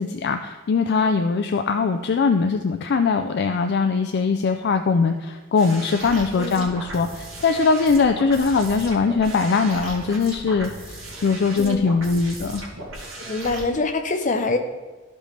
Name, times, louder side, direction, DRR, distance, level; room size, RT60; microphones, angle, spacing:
voice 1, 0.0-12.7, left 4 dB, 55° left, 6 dB, 0.4 m, -21 dB
sound 1, 5.6-13.6, right 1 dB, 90° right, 2.0 m, -37 dB
voice 2, 6.4-6.7 11.6-11.9 13.2-14.6, left 3 dB, 40° left, 5 dB, 0.8 m, -25 dB
13.0 x 5.2 x 3.3 m, 1.2 s
head